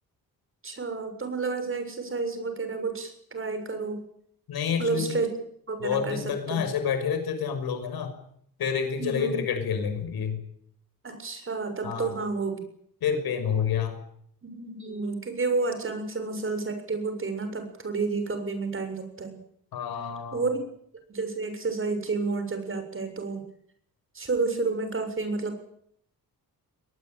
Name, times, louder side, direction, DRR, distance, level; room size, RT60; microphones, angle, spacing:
voice 1, 0.6-4.0 4.8-5.3 5.7-6.2 6.5-6.7 9.0-9.4 11.0-12.6 14.4-19.4 20.3-20.6 21.1-23.4 24.1-25.6, right 4 dB, 35° right, 8 dB, 7.1 m, -30 dB
voice 2, 4.5-5.2 5.8-8.1 8.6-10.4 11.8-12.1 13.0-14.0 19.7-20.4, left 7 dB, 90° left, 8 dB, 6.2 m, -28 dB
22.5 x 20.0 x 9.3 m, 0.67 s
cardioid pair, 115°, 36 cm